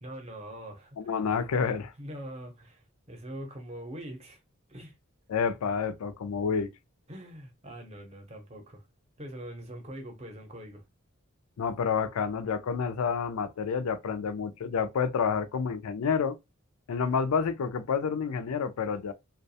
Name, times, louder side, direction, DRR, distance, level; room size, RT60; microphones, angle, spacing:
voice 1, 0.0-1.2 2.0-4.4 4.7-4.9 7.1-8.8 9.2-10.8, right 1 dB, 30° right, 0.6 m, -43 dB
voice 2, 1.0-1.9 5.3-6.7 11.6-16.4 16.9-19.1, left 6 dB, 90° left, 0.4 m, -29 dB
2.3 x 2.2 x 2.6 m
head